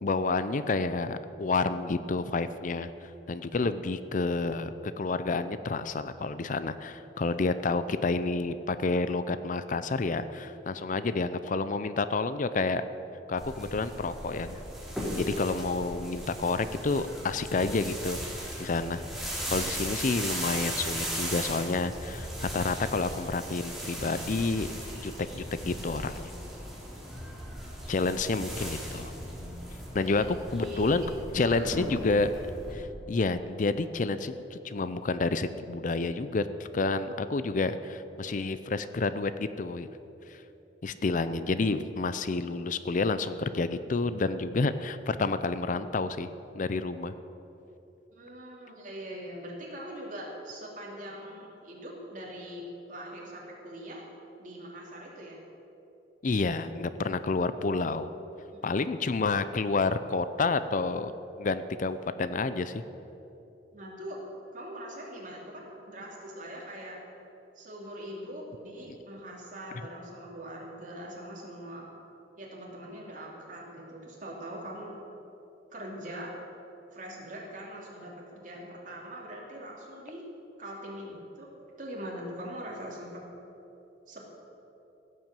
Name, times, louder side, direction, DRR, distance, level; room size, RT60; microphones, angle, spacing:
voice 1, 0.0-12.8 13.3-14.6 15.1-18.2 18.6-24.7 25.0-26.3 27.9-29.1 29.9-30.2 30.5-31.0 31.3-39.9 40.3-40.4 40.8-46.3 46.5-47.1 56.2-58.1 58.6-61.1 61.4-62.8 68.9-69.0, left 3 dB, 50° left, 12 dB, 0.5 m, -29 dB
sound 1, 13.4-32.7, equal, ahead, 3.2 m, -37 dB
voice 2, 30.0-31.7 48.1-52.6 52.9-54.0 54.4-55.4 58.5-58.6 63.7-64.2 64.5-67.0 67.5-71.9 72.4-74.9 75.7-76.3 76.9-80.2 80.6-81.5 81.8-83.2 84.1-84.3, right 1 dB, 50° right, -2 dB, 3.0 m, -42 dB
15.5 x 7.7 x 7.5 m, 2.9 s
head